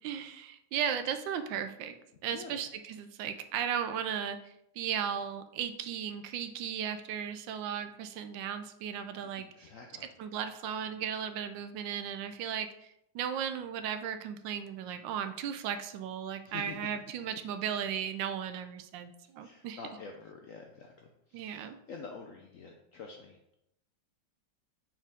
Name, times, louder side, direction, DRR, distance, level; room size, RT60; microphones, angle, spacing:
voice 1, 0.0-2.0 2.2-9.7 10.2-19.8 21.3-21.8, right 8 dB, 80° right, 9 dB, 1.3 m, -36 dB
voice 2, 9.2-10.1 16.5-16.9 19.4-23.5, left 5 dB, 75° left, 2 dB, 0.7 m, -47 dB
6.0 x 4.5 x 3.5 m, 0.81 s
omnidirectional pair, 2.0 m